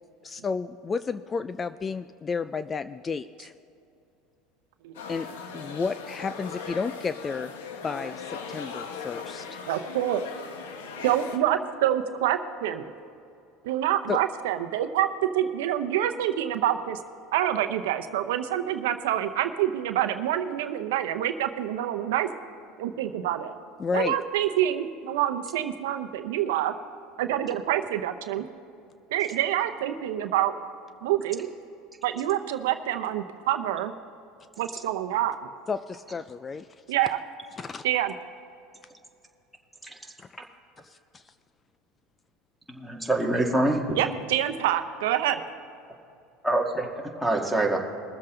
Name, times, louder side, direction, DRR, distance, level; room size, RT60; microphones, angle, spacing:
voice 1, 0.2-3.5 5.1-5.3 5.5-7.5 7.8-9.6 14.1-14.2 23.8-24.2 35.7-36.7 37.6-37.8 40.2-40.3 40.8-41.2, left 5 dB, 25° left, 13 dB, 0.3 m, -32 dB
sound 1, 4.9-11.4, left 5 dB, 90° left, 1.2 m, -39 dB
voice 2, 9.7-10.2 11.0-12.9 13.6-15.1 15.3-17.0 17.3-22.3 22.8-23.5 23.9-26.7 27.2-28.5 29.1-30.5 31.0-31.5 32.0-33.9 34.6-35.4 36.9-37.2 37.8-38.1 43.9-45.4, right 12 dB, 85° right, 8 dB, 0.7 m, -26 dB
voice 3, 42.7-44.0 46.4-47.8, right 1 dB, ahead, -2 dB, 2.0 m, -25 dB
22.0 x 7.6 x 3.9 m, 2.7 s
supercardioid pair, 105°, 0 cm